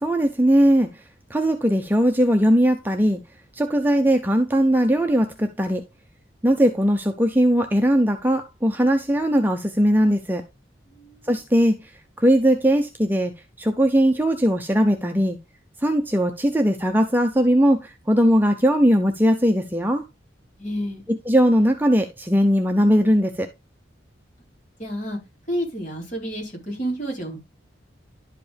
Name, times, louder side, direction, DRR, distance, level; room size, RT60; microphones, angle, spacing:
voice 1, 0.0-0.9 1.3-3.2 3.5-5.8 6.4-10.4 11.2-11.9 12.2-13.3 13.6-15.4 15.8-20.0 21.1-23.5, equal, 10° right, 0.6 m, -19 dB
voice 2, 10.9-11.3 20.6-21.0 24.8-25.2 25.5-27.4, equal, 40° left, 4.2 m, -29 dB
11.5 x 5.0 x 3.4 m
head